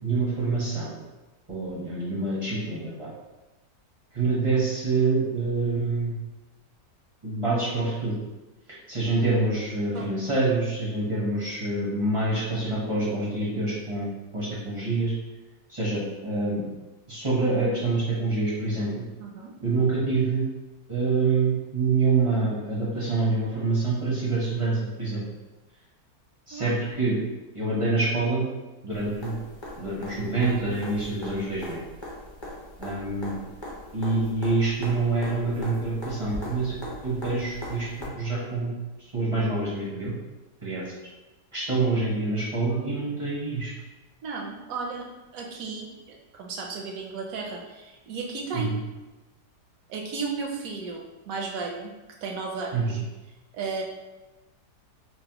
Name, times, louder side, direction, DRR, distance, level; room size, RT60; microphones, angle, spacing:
voice 1, 0.0-1.0 1.5-3.1 4.1-6.2 7.2-8.1 8.7-15.1 15.7-16.7 17.1-19.0 19.6-20.5 20.9-25.2 26.5-27.2 27.5-28.4 28.8-29.4 29.8-31.8 32.8-33.4 33.9-36.7 37.0-38.7 39.0-40.1 40.6-40.8 41.5-43.7 48.5-48.8 52.7-53.0, right 3 dB, 35° right, -7 dB, 0.5 m, -26 dB
voice 2, 19.2-19.5 26.5-26.7 44.2-45.1 45.3-48.7 49.9-51.9 52.2-53.0 53.5-53.8, right 4 dB, 70° right, 0 dB, 0.9 m, -34 dB
sound 1, 28.9-38.1 40.0-40.1, left 1 dB, 25° left, 0.5 m, -40 dB
5.8 x 2.0 x 2.8 m, 1.1 s
omnidirectional pair, 1.8 m